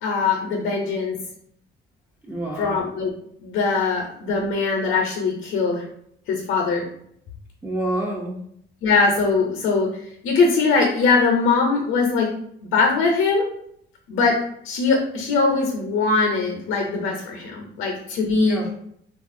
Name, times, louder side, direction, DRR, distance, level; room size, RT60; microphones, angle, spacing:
voice 1, 0.0-1.2 2.6-3.1 3.4-5.8 6.3-6.8 8.8-12.3 12.6-13.5 14.1-18.6, left 4 dB, 80° left, 0 dB, 0.6 m, -21 dB
voice 2, 2.2-2.9 7.6-8.4 18.4-18.7, right 1 dB, 10° right, -3 dB, 0.3 m, -28 dB
3.3 x 2.4 x 2.5 m, 0.71 s
cardioid pair, 120°, 20 cm